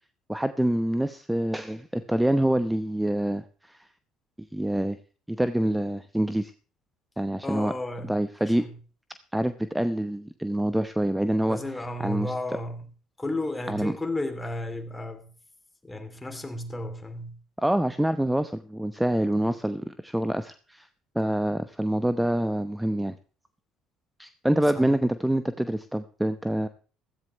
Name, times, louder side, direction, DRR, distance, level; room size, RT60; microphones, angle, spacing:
voice 1, 0.3-3.9 4.5-5.0 5.3-6.5 7.2-7.7 8.1-8.7 9.3-11.6 12.0-12.3 13.7-13.9 17.6-20.9 21.1-23.2 24.2-26.7, right 1 dB, 5° right, 0.9 m, -26 dB
voice 2, 7.4-8.1 8.4-8.7 11.5-12.9 13.2-15.3 15.8-17.4 24.7-24.9, left 1 dB, 15° left, 2.8 m, -33 dB
15.5 x 14.5 x 3.2 m
hypercardioid pair, 60°, 0 cm